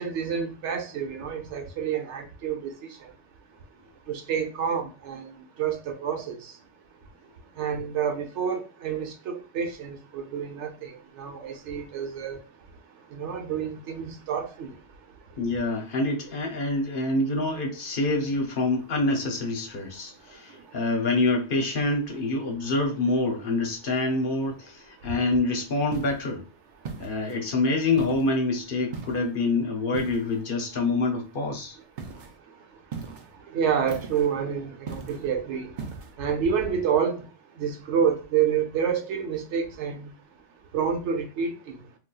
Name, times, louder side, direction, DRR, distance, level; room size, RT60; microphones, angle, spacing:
voice 1, 0.0-2.7 4.1-5.3 5.6-6.4 7.6-10.9 11.2-12.4 13.1-14.7 33.5-35.7 36.2-37.3 37.6-40.1 40.7-41.5, right 7 dB, 85° right, 1.0 m, -28 dB
voice 2, 15.4-26.4 27.0-31.8, left 2 dB, 55° left, 0.8 m, -26 dB
sound 1, 25.9-26.3 26.8-27.4 28.0-28.4 28.9-29.3 29.9-30.4 32.0-32.3 32.9-33.3 33.9-34.3 34.9-35.3 35.8-36.1, right 5 dB, 55° right, 0.6 m, -38 dB
3.9 x 2.4 x 2.2 m
omnidirectional pair, 1.2 m